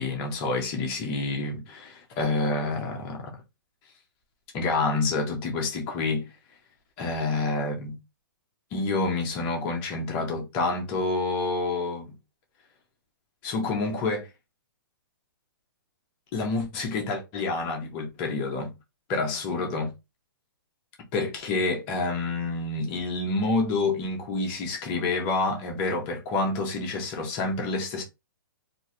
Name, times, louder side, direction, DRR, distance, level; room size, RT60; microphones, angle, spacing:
voice 1, 0.0-3.4 4.5-6.3 7.0-8.0 8.7-12.1 13.4-14.3 16.3-18.7 19.1-19.9 21.1-28.0, left 3 dB, 15° left, 0.4 m, -28 dB
3.0 x 2.4 x 2.8 m
hypercardioid pair, 175°, 12 cm